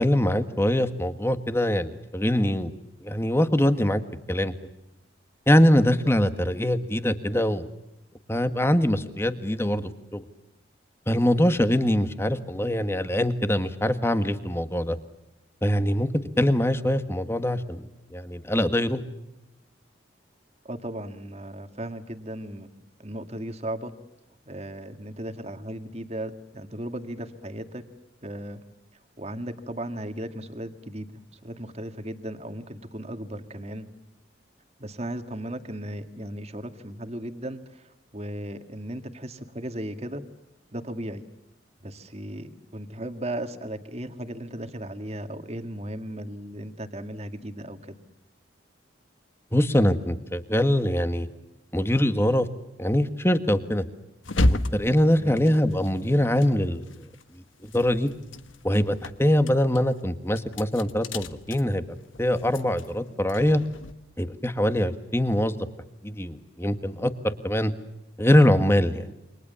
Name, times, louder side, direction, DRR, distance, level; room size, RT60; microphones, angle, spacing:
voice 1, 0.0-2.7 3.0-4.0 4.3-4.5 5.5-7.7 8.3-10.2 11.1-15.0 15.6-16.1 16.4-19.0 49.5-51.3 51.7-52.5 52.8-53.8 54.4-56.9 57.6-58.1 58.6-61.8 62.2-63.6 64.2-65.6 66.0-67.7 68.2-69.1, left 1 dB, 15° left, 10 dB, 1.5 m, -23 dB
voice 2, 20.6-22.7 23.0-23.9 24.5-27.8 28.2-28.6 29.2-31.1 31.3-33.9 34.8-40.2 40.7-41.2 41.8-48.0 55.2-55.4, right 1 dB, 35° right, 8 dB, 2.0 m, -36 dB
sound 1, 54.2-57.2 57.5-63.9, left 1 dB, 90° left, 1.3 m, -32 dB
29.0 x 25.0 x 7.0 m, 0.91 s
head